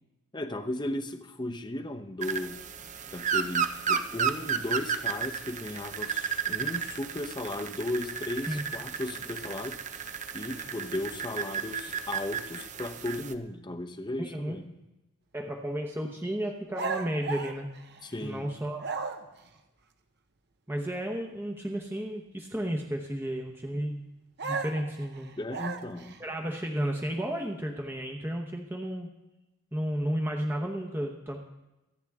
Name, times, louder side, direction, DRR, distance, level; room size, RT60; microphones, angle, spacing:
voice 1, 0.3-2.6 3.1-14.7 18.0-18.5 25.4-26.2, left 1 dB, 20° left, 6 dB, 0.8 m, -36 dB
sound 1, 2.2-13.3, right 7 dB, 35° right, 0.6 m, -33 dB
voice 2, 14.2-14.6 15.3-17.7 18.2-18.9 20.7-24.0 24.4-25.4 26.2-29.1 29.7-31.4, right 1 dB, 10° right, 0 dB, 0.9 m, -33 dB
sound 2, 16.7-18.4 18.8-19.5 24.4-26.2, right 4 dB, 50° right, 0.9 m, -35 dB
25.5 x 9.0 x 3.6 m, 1.0 s
head